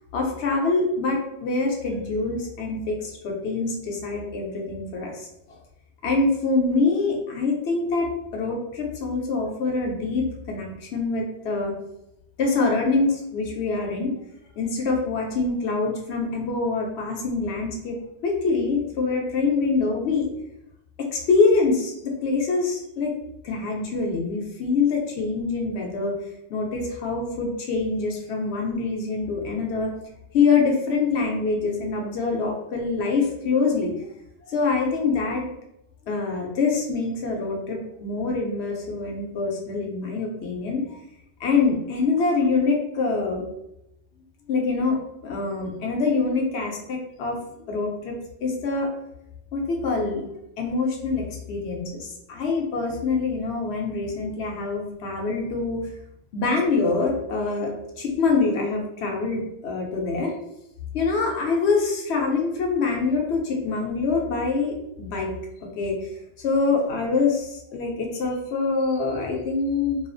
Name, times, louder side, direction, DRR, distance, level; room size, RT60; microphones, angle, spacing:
voice 1, 0.1-5.6 6.0-11.7 12.4-14.1 14.6-18.0 18.2-20.3 21.0-23.1 23.4-26.1 26.5-29.9 30.3-33.9 34.5-35.5 36.1-41.0 41.4-43.4 44.5-47.4 47.7-48.2 48.4-48.9 49.5-50.2 50.6-55.8 56.3-57.7 58.0-60.3 60.9-65.3 65.8-66.1 66.4-70.0, left 4 dB, 70° left, 0 dB, 0.8 m, -25 dB
2.4 x 2.3 x 2.4 m, 0.82 s
omnidirectional pair, 1.2 m